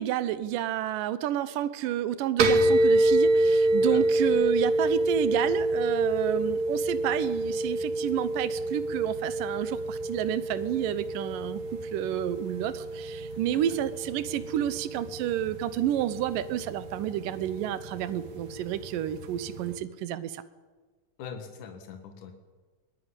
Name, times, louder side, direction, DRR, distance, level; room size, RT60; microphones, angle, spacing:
voice 1, 0.0-11.6 11.9-20.4, right 11 dB, 80° right, 13 dB, 2.6 m, -30 dB
sound 1, 2.4-19.7, right 1 dB, 60° right, 2.9 m, -28 dB
voice 2, 21.2-22.3, left 6 dB, 70° left, 5 dB, 3.2 m, -41 dB
22.5 x 17.5 x 9.9 m, 1.4 s
omnidirectional pair, 3.8 m